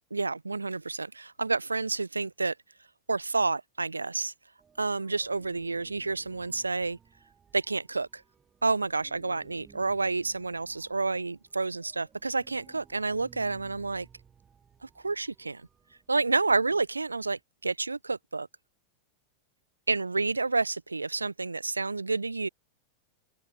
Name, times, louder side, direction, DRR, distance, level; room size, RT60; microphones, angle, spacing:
voice 1, 0.1-2.5 3.1-4.3 4.8-7.0 7.5-8.2 8.6-14.1 14.8-15.6 16.1-18.5 19.9-22.5, right 3 dB, 80° right, 0.4 m, -29 dB
sound 1, 4.6-17.4, right 7 dB, 20° right, 3.6 m, -58 dB
open air
figure-of-eight pair, 90°, 0 cm